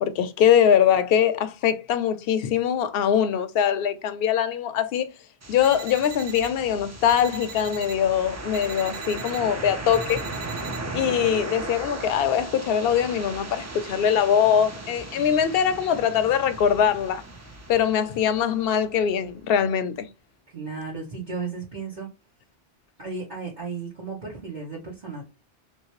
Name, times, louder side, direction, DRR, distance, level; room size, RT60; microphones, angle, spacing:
voice 1, 0.0-5.1 5.5-10.2 10.9-17.2 17.7-20.1, left 8 dB, 65° left, 0.7 m, -22 dB
sound 1, 5.4-19.3, right 2 dB, 25° right, 0.3 m, -37 dB
sound 2, 5.6-6.5 7.1-7.9 8.5-9.4 9.9-10.8, right 8 dB, 90° right, 1.0 m, -41 dB
voice 2, 20.5-22.1 23.0-25.2, right 4 dB, 45° right, 1.1 m, -34 dB
3.2 x 2.7 x 2.9 m
omnidirectional pair, 1.1 m